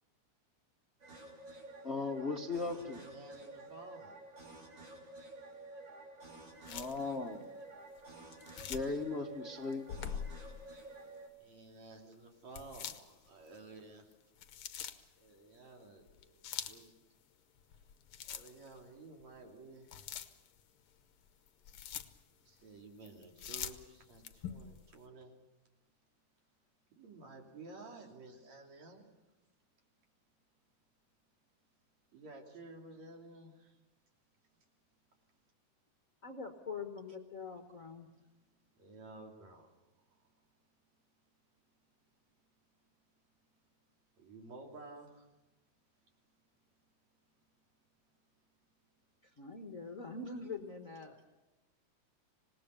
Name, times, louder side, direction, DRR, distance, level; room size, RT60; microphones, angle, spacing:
sound 1, 1.0-11.3, right 2 dB, 35° right, 4.2 m, -51 dB
voice 1, 1.8-3.0 6.7-7.5 8.7-9.8, left 3 dB, 85° left, 2 dB, 0.5 m, -37 dB
voice 2, 2.8-4.2 11.4-14.1 15.2-16.9 18.3-20.0 22.4-25.3 27.0-29.1 32.1-33.8 38.8-40.5 44.2-45.3, right 3 dB, 60° right, 1 dB, 4.2 m, -53 dB
sound 2, 6.6-7.0 8.3-9.0 9.7-10.7 12.5-13.5 14.1-15.1 16.1-16.9 17.6-18.8 19.2-19.3 19.9-20.6 21.3-22.2 23.0-24.8, left 8 dB, 65° left, 1.4 m, -44 dB
voice 3, 36.2-38.1 49.2-51.2, left 4 dB, 45° left, 4 dB, 1.1 m, -44 dB
26.0 x 19.0 x 6.9 m, 1.1 s
omnidirectional pair, 3.5 m